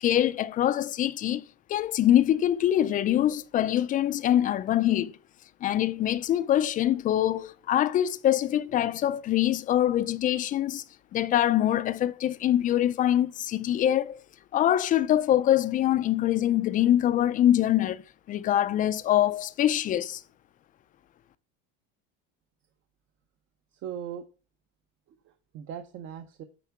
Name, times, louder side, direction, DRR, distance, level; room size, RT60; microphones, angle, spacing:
voice 1, 0.0-1.4 1.7-5.1 5.6-10.8 11.1-14.2 14.5-18.0 18.3-20.2, left 12 dB, 30° left, 0.5 m, -24 dB
voice 2, 23.7-24.2 25.1-26.4, right 9 dB, 40° right, 0.8 m, -39 dB
9.1 x 4.5 x 5.7 m
cardioid pair, 150°, 29 cm